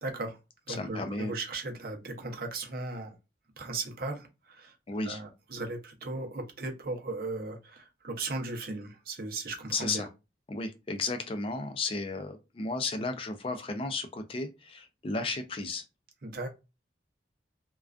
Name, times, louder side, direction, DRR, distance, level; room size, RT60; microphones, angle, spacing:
voice 1, 0.0-0.4 0.7-3.1 3.6-4.7 5.0-10.1 16.2-16.5, right 3 dB, 55° right, 0.6 m, -37 dB
voice 2, 0.7-1.3 4.9-5.2 9.7-10.1 10.5-15.8, left 3 dB, 30° left, 0.4 m, -34 dB
2.4 x 2.2 x 2.4 m
head